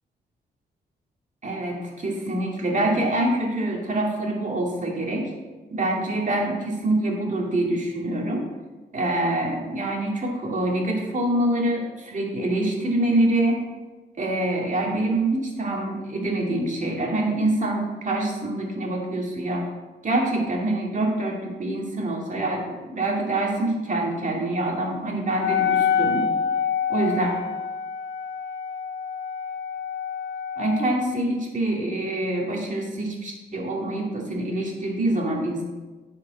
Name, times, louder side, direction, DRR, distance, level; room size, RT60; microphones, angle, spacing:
voice 1, 1.4-5.3 5.7-8.4 8.9-13.6 14.2-19.7 20.0-26.2 26.9-27.3 30.6-35.6, right 1 dB, 45° right, -1 dB, 2.2 m, -25 dB
Wind instrument woodwind instrument, 25.3-31.1, left 7 dB, 85° left, 0.5 m, -27 dB
9.8 x 5.2 x 4.1 m, 1.2 s
cardioid pair, 65°, 18 cm